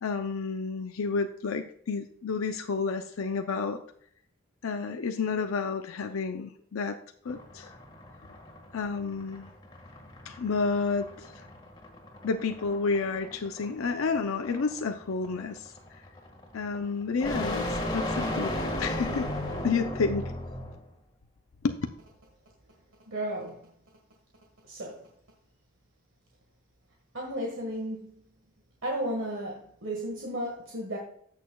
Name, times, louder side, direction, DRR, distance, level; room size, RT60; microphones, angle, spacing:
voice 1, 0.0-3.8 4.6-7.0 7.2-7.7 8.7-9.5 10.3-11.4 12.2-16.0 16.5-19.3 19.6-20.3 21.6-21.8, left 4 dB, 85° left, 6 dB, 0.5 m, -30 dB
sound 1, 7.3-20.8, left 1 dB, 20° left, 1.6 m, -36 dB
voice 2, 23.1-23.6 24.7-25.0 27.1-28.1 28.8-31.0, right 1 dB, 70° right, 0 dB, 1.5 m, -33 dB
14.5 x 6.5 x 2.3 m, 0.64 s
head